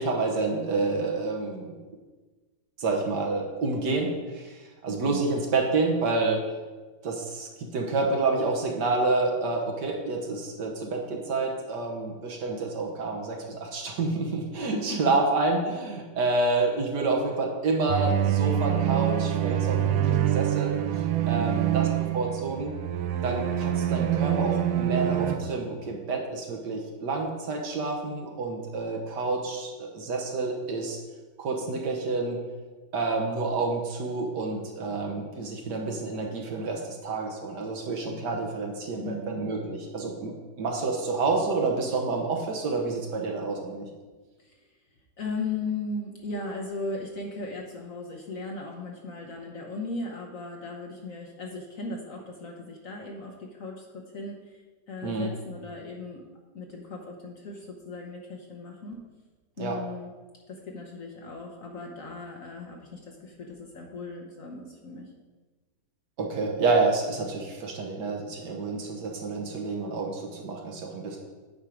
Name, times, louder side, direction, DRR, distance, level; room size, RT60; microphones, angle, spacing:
voice 1, 0.0-1.7 2.8-6.4 7.0-20.7 21.3-21.9 22.1-22.7 23.2-31.0 31.4-32.4 32.9-43.9 55.0-55.3 59.6-59.8 66.2-71.2, right 3 dB, 65° right, 1 dB, 1.6 m, -28 dB
voice 2, 4.9-5.2 14.7-15.1 21.3-21.7 39.0-39.5 44.4-44.7 45.2-54.6 54.9-56.2 56.5-59.0 59.6-60.1 60.5-65.1, left 3 dB, 55° left, 0 dB, 1.1 m, -37 dB
sound 1, 17.9-25.4, right 11 dB, 80° right, 1.3 m, -26 dB
9.3 x 4.5 x 5.0 m, 1.3 s
omnidirectional pair, 2.1 m